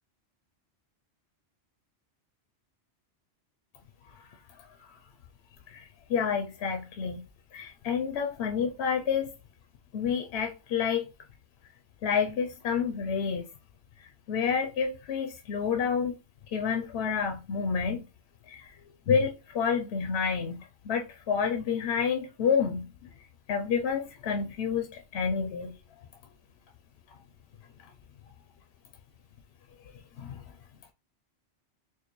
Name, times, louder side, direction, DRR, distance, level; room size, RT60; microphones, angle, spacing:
voice 1, 6.1-7.2 7.5-9.3 9.9-11.1 12.0-13.4 14.3-16.1 16.5-18.0 18.5-18.6 19.1-22.9 23.5-24.9 25.1-25.7 30.2-30.4, left 6 dB, 70° left, 0.8 m, -29 dB
4.6 x 2.1 x 3.0 m
omnidirectional pair, 1.2 m